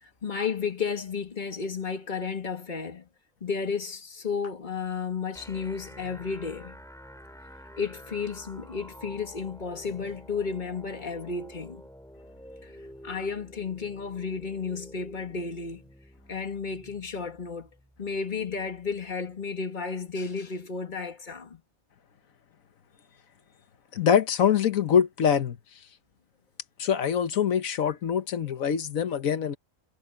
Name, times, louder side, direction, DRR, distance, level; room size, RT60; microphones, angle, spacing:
voice 1, 0.0-3.0 3.4-6.8 7.8-11.8 12.6-12.7 13.0-15.8 16.3-17.7 18.0-21.6, left 5 dB, 35° left, 1.9 m, -33 dB
sound 1, 5.3-19.3, equal, ahead, 4.4 m, -49 dB
voice 2, 23.9-25.6 26.8-29.6, left 8 dB, 85° left, 1.4 m, -24 dB
omnidirectional pair, 1.4 m